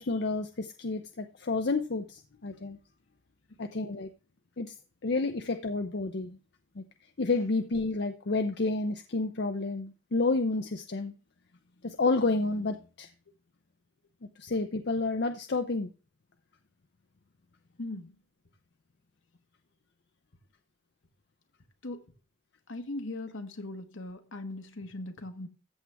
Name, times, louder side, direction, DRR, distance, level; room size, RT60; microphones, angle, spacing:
voice 1, 0.0-2.8 3.6-4.1 4.6-4.7 5.0-6.4 6.8-6.9 7.2-11.1 11.8-13.1 14.4-15.9, left 3 dB, 50° left, 0.6 m, -30 dB
voice 2, 17.8-18.1 21.8-22.0 22.7-25.5, left 2 dB, 70° left, 1.3 m, -39 dB
14.0 x 7.4 x 3.5 m
head